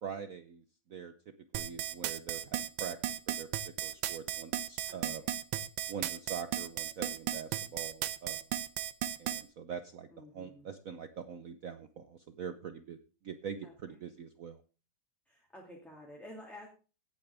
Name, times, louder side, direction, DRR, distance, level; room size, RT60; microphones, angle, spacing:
voice 1, 0.0-1.1 1.5-3.0 3.3-3.5 3.8-5.2 5.9-8.4 9.2-10.1 10.3-13.0 13.2-14.6, right 7 dB, 55° right, 9 dB, 1.0 m, -43 dB
sound 1, 1.5-9.4, right 11 dB, 80° right, 1.5 m, -35 dB
voice 2, 4.9-5.3 10.1-10.7 13.6-13.7 15.3-16.7, left 1 dB, ahead, -1 dB, 2.3 m, -51 dB
17.0 x 8.6 x 3.4 m, 0.34 s
omnidirectional pair, 2.2 m